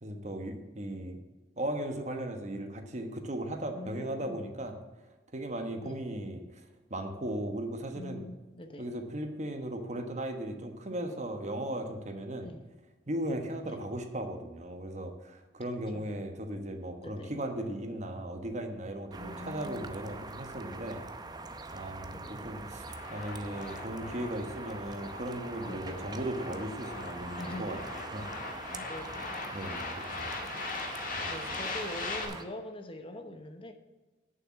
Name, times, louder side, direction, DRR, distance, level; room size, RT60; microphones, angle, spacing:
voice 1, 0.0-1.2 1.6-4.8 5.3-6.4 6.9-8.2 8.8-12.5 13.1-21.0 21.7-22.8 23.1-27.8 28.1-28.2 29.5-30.3 31.1-31.6, right 1 dB, 40° right, 6 dB, 1.2 m, -37 dB
voice 2, 3.7-4.4 5.8-6.0 7.9-8.9 12.4-12.6 13.6-13.8 15.9-16.1 17.0-17.4 19.2-19.9 22.1-22.4 25.7-26.1 27.4-27.8 28.7-29.4 30.1-30.8 31.3-33.7, left 1 dB, 30° left, 7 dB, 0.9 m, -44 dB
sound 1, 19.1-32.4, right 3 dB, 25° right, 0.7 m, -43 dB
sound 2, 22.9-32.2, left 3 dB, 50° left, 1.9 m, -40 dB
9.0 x 7.0 x 7.3 m, 1.2 s
head